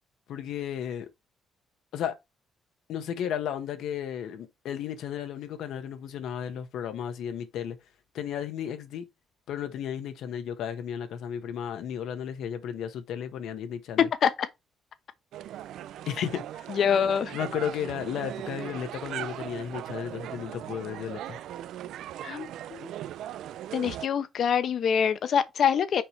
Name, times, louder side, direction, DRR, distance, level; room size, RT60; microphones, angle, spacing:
voice 1, 0.3-1.1 1.9-2.2 2.9-7.8 8.1-9.1 9.5-14.1 16.0-16.4 17.3-21.4, left 9 dB, 80° left, 1.4 m, -34 dB
sound 1, 15.3-24.1, right 12 dB, 80° right, 0.3 m, -39 dB
voice 2, 16.7-17.4 22.2-22.9 23.7-26.0, left 7 dB, 60° left, 1.0 m, -25 dB
6.1 x 4.9 x 3.3 m
cardioid pair, 90°, 0 cm